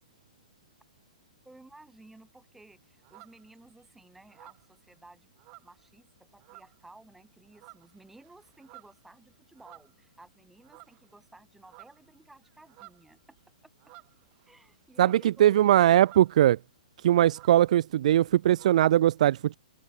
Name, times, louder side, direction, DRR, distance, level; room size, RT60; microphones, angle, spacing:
voice 1, 1.4-5.3 5.6-13.4 13.6-13.7 14.4-15.5, right 2 dB, 5° right, 4.9 m, -55 dB
sound 1, 2.7-3.8 4.2-6.1 6.4-6.9 7.3-10.3 10.6-11.2 11.4-16.5 16.8-16.9 17.1-19.0, right 27 dB, 35° right, 7.1 m, -55 dB
voice 2, 15.0-16.6 17.0-19.5, right 12 dB, 60° right, 0.3 m, -21 dB
hypercardioid pair, 125°, 4 cm